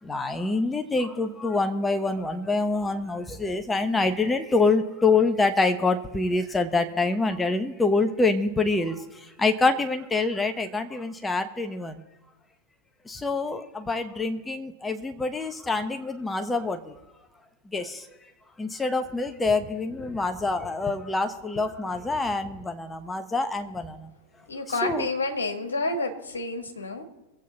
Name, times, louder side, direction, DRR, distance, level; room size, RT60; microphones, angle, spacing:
voice 1, 0.0-12.0 13.0-17.0 17.7-18.1 18.6-24.1 24.8-25.1, left 3 dB, 10° left, 6 dB, 1.1 m, -26 dB
voice 2, 24.5-27.0, left 2 dB, 75° left, 4 dB, 1.9 m, -29 dB
23.0 x 8.5 x 4.1 m, 1.1 s
figure-of-eight pair, 90°, 0 cm